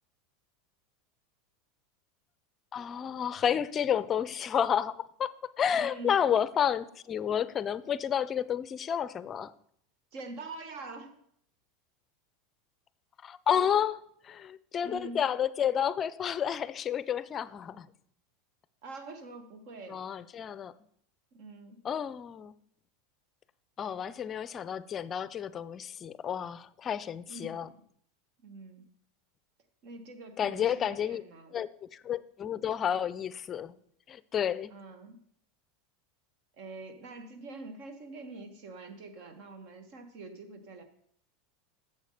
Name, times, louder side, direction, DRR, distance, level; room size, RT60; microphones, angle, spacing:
voice 1, 2.7-5.3 5.6-9.5 13.2-17.9 19.9-20.7 21.8-22.5 23.8-27.7 30.4-31.2 31.5-33.8 34.1-34.7, left 8 dB, 30° left, 0.5 m, -31 dB
voice 2, 5.7-6.1 10.1-11.2 14.8-15.2 18.8-20.1 21.3-21.8 27.3-27.7 28.4-28.9 29.8-31.6 34.7-35.2 36.6-40.8, right 3 dB, 60° right, 1.6 m, -45 dB
8.1 x 7.3 x 6.6 m
supercardioid pair, 115°, 0 cm